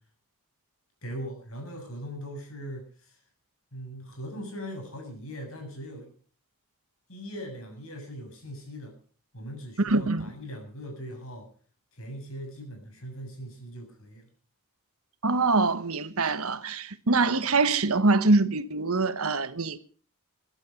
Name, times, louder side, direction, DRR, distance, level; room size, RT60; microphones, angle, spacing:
voice 1, 1.0-3.2 3.7-6.1 7.1-8.9 9.3-11.5 11.9-14.3, equal, 65° left, 7.4 m, -40 dB
voice 2, 9.8-10.3 15.2-19.8, right 3 dB, 70° right, 1.2 m, -24 dB
22.5 x 12.0 x 5.2 m
head